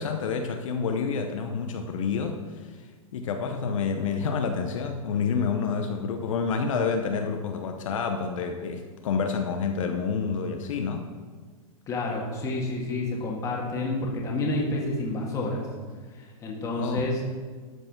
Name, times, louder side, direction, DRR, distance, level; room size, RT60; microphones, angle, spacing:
voice 1, 0.0-2.4 2.8-2.9 3.1-11.1 16.8-17.1, left 5 dB, 65° left, 5 dB, 0.9 m, -28 dB
voice 2, 11.9-15.7 16.1-17.3, left 2 dB, 15° left, -2 dB, 1.7 m, -29 dB
13.0 x 4.7 x 6.0 m, 1.5 s
supercardioid pair, 160°, 18 cm